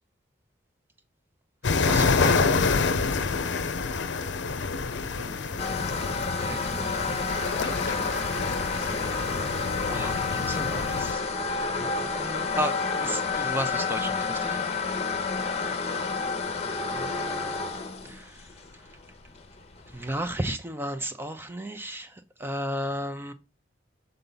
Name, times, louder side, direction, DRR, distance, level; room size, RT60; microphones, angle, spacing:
sound 1, 1.6-11.1, left 4 dB, 75° left, 0.6 m, -27 dB
voice 1, 1.6-2.5 5.2-5.9 6.4-7.3 7.6-8.3 8.7-9.2 9.9-11.2 11.7-14.6 16.7-17.6 18.0-18.8 19.9-23.3, equal, 10° right, 0.5 m, -35 dB
sound 2, 5.6-20.4, left 4 dB, 35° left, 0.7 m, -30 dB
6.8 x 3.9 x 3.9 m
head